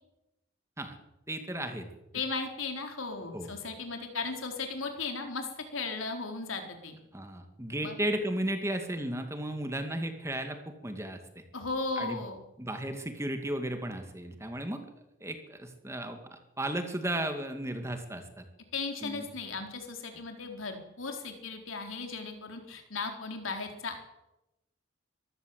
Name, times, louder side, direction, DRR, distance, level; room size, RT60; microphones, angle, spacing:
voice 1, 1.3-1.9 3.3-3.5 7.1-11.2 12.0-12.2 12.6-14.8 15.2-18.4 19.0-19.3, right 1 dB, 15° right, 6 dB, 2.2 m, -34 dB
voice 2, 2.1-7.0 7.8-7.9 11.5-12.4 18.7-24.0, left 4 dB, 90° left, 4 dB, 4.2 m, -36 dB
24.0 x 15.0 x 7.9 m, 0.94 s
head